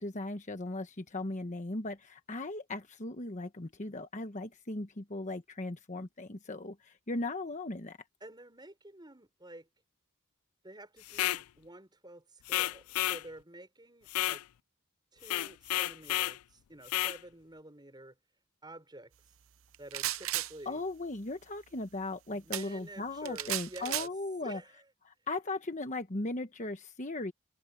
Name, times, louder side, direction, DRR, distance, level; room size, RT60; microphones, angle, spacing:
voice 1, 0.0-8.0 20.6-24.6 25.1-27.3, left 2 dB, 35° left, 1.1 m, -37 dB
voice 2, 8.2-9.7 10.6-14.4 15.1-18.2 18.6-19.1 19.8-20.8 22.3-24.1 24.4-24.9, right 1 dB, 20° right, 5.8 m, -50 dB
sound 1, 11.1-11.4 12.5-13.2 14.1-14.4 15.2-16.4 16.9-17.2, left 15 dB, 90° left, 0.4 m, -31 dB
sound 2, 19.7-20.5 22.5-22.7 23.2-24.1, right 14 dB, 70° right, 0.7 m, -34 dB
head